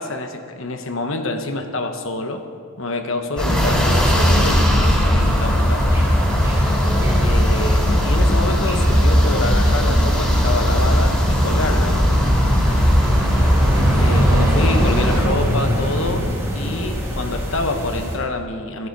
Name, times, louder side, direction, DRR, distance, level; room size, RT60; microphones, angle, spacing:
voice 1, 0.0-2.4 2.8-5.9 7.2-12.1 13.9-16.2 16.5-18.9, left 2 dB, 60° left, 6 dB, 1.1 m, -27 dB
sound 1, 3.4-15.2, equal, 5° left, 2.7 m, -17 dB
sound 2, 5.2-18.2, equal, 15° right, 2.8 m, -25 dB
15.5 x 11.0 x 5.4 m, 2.2 s
head